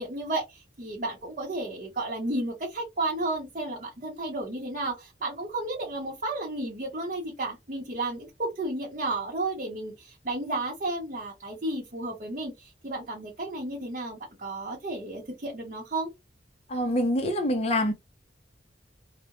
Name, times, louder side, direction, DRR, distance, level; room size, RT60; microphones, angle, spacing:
voice 1, 0.0-16.1, right 2 dB, 45° right, 0.7 m, -33 dB
voice 2, 16.7-17.9, left 1 dB, 35° left, 0.5 m, -25 dB
2.3 x 2.1 x 2.9 m
head